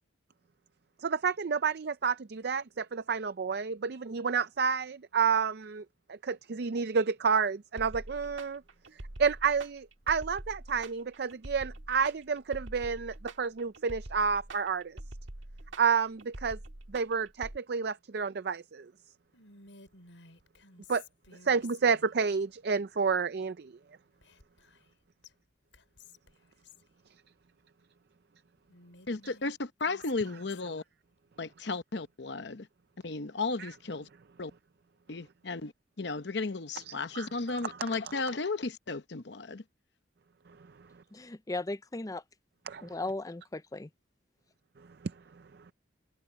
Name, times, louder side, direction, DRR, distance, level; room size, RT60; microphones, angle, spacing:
voice 1, 1.0-5.8 6.1-8.6 9.2-15.0 15.8-16.6 16.9-18.9 20.9-21.0 21.4-23.7 33.6-33.7 36.8-37.3 37.7-37.8 42.7-42.8, right 5 dB, 55° right, 0.5 m, -30 dB
sound 1, 7.8-17.6, right 1 dB, 85° right, 1.8 m, -45 dB
Whispering, 19.3-22.2 24.2-24.9 25.2-25.3 25.7-26.9 28.7-30.8, left 4 dB, 80° left, 7.1 m, -55 dB
voice 2, 29.1-30.8 31.4-32.7 33.0-34.1 34.4-34.5 35.1-35.7 36.0-39.6, left 3 dB, 60° left, 0.9 m, -34 dB
voice 3, 41.1-42.2 42.8-43.9, left 2 dB, 20° left, 0.5 m, -37 dB
head